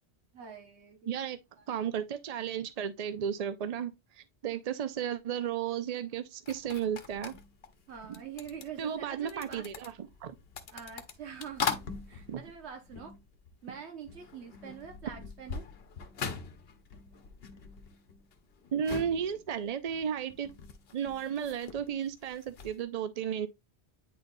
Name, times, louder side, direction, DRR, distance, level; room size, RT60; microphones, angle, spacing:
voice 1, 0.3-1.0 1.6-1.7 7.9-9.7 10.7-13.1 13.6-15.7, right 7 dB, 75° right, 1.2 m, -45 dB
voice 2, 1.1-1.4 1.7-7.3 8.8-9.9 10.2-10.4 12.3-12.4 18.7-20.5 20.9-23.5, right 8 dB, 60° right, 0.4 m, -34 dB
sound 1, 6.5-13.8 14.0-22.8, left 6 dB, 65° left, 1.1 m, -42 dB
9.3 x 4.0 x 2.5 m
omnidirectional pair, 1.1 m